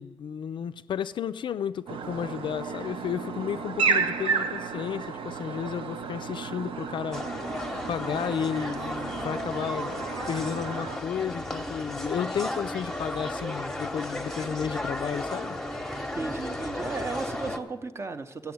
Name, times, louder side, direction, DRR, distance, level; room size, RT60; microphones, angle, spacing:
voice 1, 0.0-7.2 7.9-9.9 10.3-15.6, left 8 dB, 65° left, 0.4 m, -32 dB
sound 1, 1.9-11.0, right 5 dB, 90° right, 0.9 m, -32 dB
sound 2, 7.1-17.6, left 1 dB, 5° left, 0.9 m, -34 dB
voice 2, 16.1-18.5, right 3 dB, 30° right, 0.6 m, -35 dB
15.5 x 7.0 x 9.3 m
wide cardioid pair, 170°, 9 cm